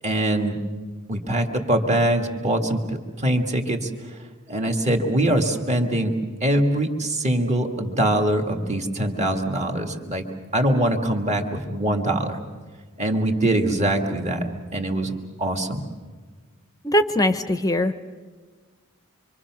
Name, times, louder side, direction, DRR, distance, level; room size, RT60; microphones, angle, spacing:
voice 1, 0.0-0.6 1.1-3.9 4.5-10.2 10.5-12.4 13.0-14.4 14.7-15.1 15.4-15.9, right 1 dB, 35° right, 3 dB, 1.9 m, -23 dB
voice 2, 16.8-18.0, left 1 dB, 15° left, 10 dB, 0.7 m, -21 dB
25.5 x 25.0 x 6.1 m, 1.4 s
head